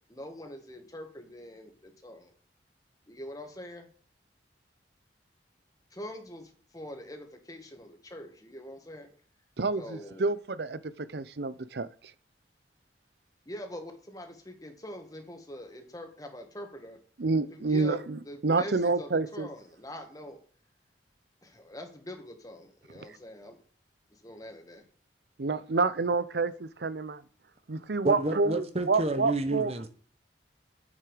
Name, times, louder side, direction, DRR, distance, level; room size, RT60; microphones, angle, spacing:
voice 1, 0.1-2.3 3.1-3.9 5.9-9.1 9.8-10.3 13.5-17.0 17.7-18.0 18.2-20.4 21.4-23.6 24.1-24.8, left 1 dB, 20° left, 1.9 m, -44 dB
voice 2, 9.6-11.9 17.2-19.5 25.4-27.2 27.7-29.7, right 3 dB, 65° right, 0.7 m, -28 dB
voice 3, 28.0-29.9, right 2 dB, 35° right, 1.0 m, -30 dB
9.6 x 7.7 x 5.0 m
head